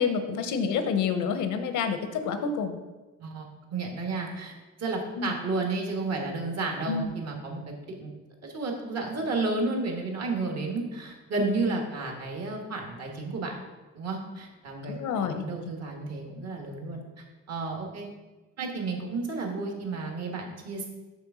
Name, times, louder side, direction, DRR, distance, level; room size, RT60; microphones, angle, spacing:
voice 1, 0.0-2.8 5.2-5.3 6.9-7.1 14.9-15.7, left 6 dB, 80° left, 8 dB, 0.8 m, -28 dB
voice 2, 3.2-4.5 4.8-7.7 8.0-8.1 8.4-13.6 13.9-15.0 15.3-18.1 18.6-20.9, right 3 dB, 55° right, 1 dB, 1.6 m, -32 dB
6.6 x 3.5 x 6.1 m, 1.2 s
cardioid pair, 90°, 30 cm